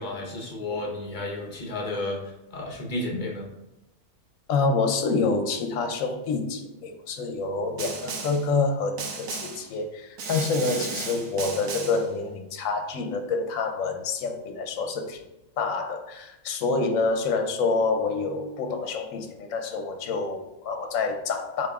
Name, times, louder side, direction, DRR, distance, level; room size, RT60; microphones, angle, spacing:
voice 1, 0.0-2.2 2.5-3.4, left 2 dB, 40° left, 0 dB, 0.9 m, -32 dB
voice 2, 4.5-15.3 15.6-21.7, left 4 dB, 80° left, 6 dB, 1.0 m, -27 dB
Snare drum, 7.8-8.5 9.0-9.7 10.2-12.1, right 4 dB, 80° right, 1.1 m, -35 dB
7.8 x 2.9 x 2.3 m, 0.93 s
omnidirectional pair, 1.4 m